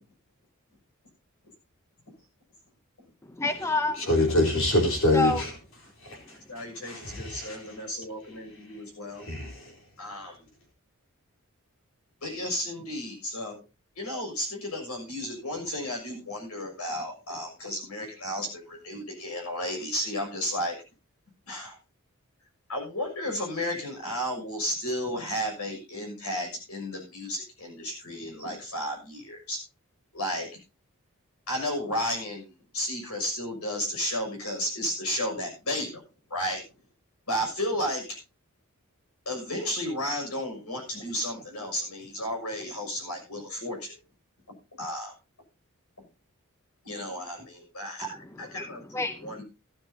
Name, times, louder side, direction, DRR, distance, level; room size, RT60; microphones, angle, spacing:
voice 1, 3.2-4.0 5.1-5.4 48.5-49.4, left 2 dB, 10° left, 0.7 m, -29 dB
voice 2, 4.0-5.5 6.0-6.2 6.8-7.8 8.7-8.8 9.2-9.8, left 1 dB, 60° left, 4.4 m, -26 dB
voice 3, 6.5-9.2 10.0-10.5 12.2-13.6 13.9-20.8 21.5-21.8 22.7-29.6 30.1-30.5 31.5-36.0 36.3-36.6 37.3-38.2 39.2-43.9 44.8-45.1 46.0-46.1 46.8-48.8 49.2-49.4, equal, 80° left, 6.6 m, -33 dB
16.0 x 12.0 x 2.8 m
head